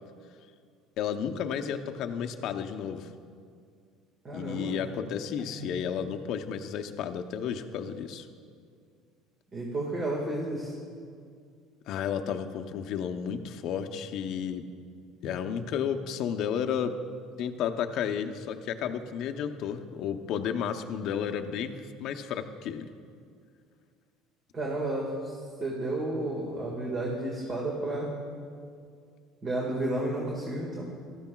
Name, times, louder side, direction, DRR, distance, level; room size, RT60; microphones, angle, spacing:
voice 1, 1.0-3.1 4.3-8.3 11.9-14.6 15.2-16.9 17.4-22.9, left 8 dB, 60° left, 7 dB, 0.7 m, -32 dB
voice 2, 4.2-4.7 5.6-5.7 9.5-10.7 24.5-25.3 25.6-28.1 29.4-30.9, right 1 dB, 30° right, -2 dB, 1.7 m, -32 dB
16.0 x 13.0 x 2.3 m, 2.2 s
cardioid pair, 120°, 0 cm